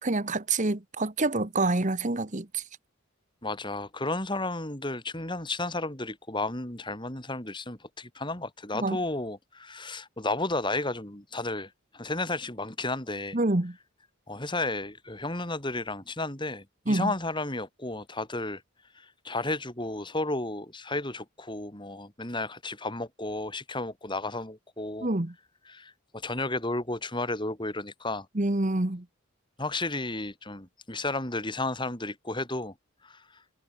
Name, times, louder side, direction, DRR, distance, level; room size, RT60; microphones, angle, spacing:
voice 1, 0.0-2.6 8.7-9.0 13.3-13.7 16.9-17.1 25.0-25.3 28.3-29.0, right 2 dB, 35° right, 1.2 m, -27 dB
voice 2, 3.4-13.4 14.3-18.6 18.9-25.1 25.6-28.3 29.6-32.7 33.0-33.2, left 2 dB, 20° left, 3.3 m, -33 dB
head